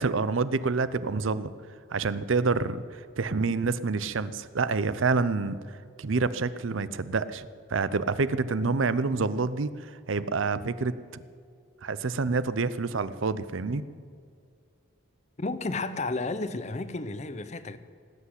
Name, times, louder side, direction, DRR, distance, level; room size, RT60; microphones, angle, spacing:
voice 1, 0.0-1.5 1.9-5.6 6.0-9.7 10.1-10.9 11.8-13.8, right 4 dB, 75° right, 0.6 m, -27 dB
voice 2, 15.4-17.8, left 3 dB, 35° left, 0.7 m, -32 dB
18.5 x 8.3 x 8.0 m
head